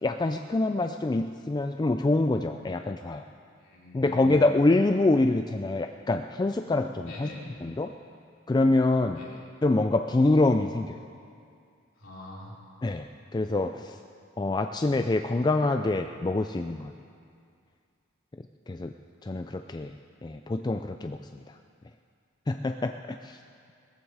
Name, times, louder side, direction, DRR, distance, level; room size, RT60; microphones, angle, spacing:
voice 1, 0.0-3.2 3.9-7.3 7.6-7.9 8.5-9.2 9.6-10.9 12.8-13.1 13.3-14.0 14.4-16.9 18.7-18.9 19.2-19.9 20.2-21.6 22.5-23.4, left 2 dB, 20° left, 7 dB, 0.3 m, -25 dB
voice 2, 3.6-4.4 4.9-5.2 7.0-7.7 9.1-9.4 12.0-12.5, left 1 dB, 65° left, -5 dB, 3.9 m, -44 dB
18.0 x 14.5 x 4.9 m, 2.3 s
head